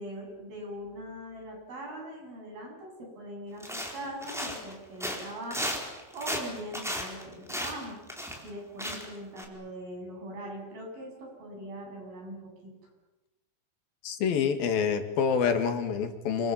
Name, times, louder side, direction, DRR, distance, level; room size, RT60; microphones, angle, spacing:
voice 1, 0.0-3.7 3.9-5.7 6.1-8.0 8.4-12.7, right 1 dB, 70° right, 0 dB, 10.0 m, -41 dB
sound 1, 3.6-4.7 5.0-8.5 8.8-9.1 9.4-9.5, equal, ahead, 3.9 m, -35 dB
voice 2, 14.0-16.5, left 6 dB, 75° left, 8 dB, 3.9 m, -27 dB
28.5 x 23.5 x 7.4 m, 1.0 s
omnidirectional pair, 4.3 m